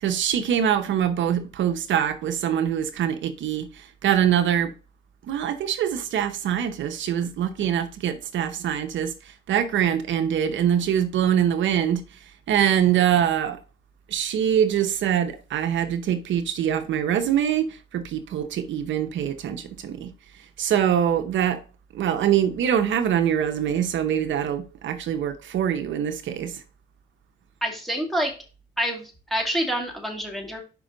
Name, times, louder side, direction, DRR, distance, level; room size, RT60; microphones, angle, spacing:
voice 1, 0.0-4.7 5.3-9.1 9.5-12.0 12.5-13.6 14.1-20.1 20.6-21.6 21.9-26.5, right 9 dB, 70° right, 0.8 m, -24 dB
voice 2, 27.6-28.3 28.8-30.6, equal, ahead, 2.2 m, -27 dB
5.9 x 5.2 x 3.9 m
cardioid pair, 90°, 20 cm